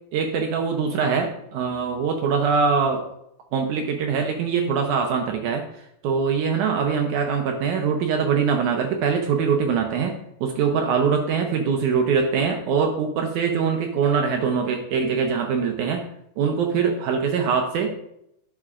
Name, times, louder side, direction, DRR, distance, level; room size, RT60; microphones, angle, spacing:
voice 1, 0.1-3.0 3.5-5.6 6.0-10.1 10.4-16.0 16.4-17.9, right 6 dB, 75° right, 4 dB, 1.8 m, -23 dB
11.0 x 6.0 x 2.4 m, 0.77 s
omnidirectional pair, 4.1 m